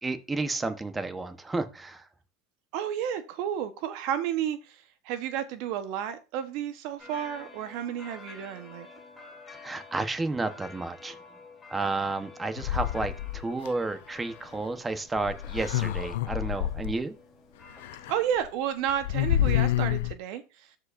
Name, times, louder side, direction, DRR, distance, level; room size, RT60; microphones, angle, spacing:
voice 1, 0.0-2.1 9.6-11.2 11.7-17.1, right 3 dB, 15° right, 1.0 m, -31 dB
voice 2, 2.7-8.9 18.1-20.7, right 10 dB, 60° right, 1.0 m, -32 dB
sound 1, 7.0-18.4, left 4 dB, 10° left, 4.1 m, -50 dB
sound 2, 12.6-13.7 15.2-17.0 17.8-18.1 18.4-18.5 18.9-20.1, left 13 dB, 75° left, 0.4 m, -28 dB
13.5 x 4.9 x 2.6 m
supercardioid pair, 120°, 0 cm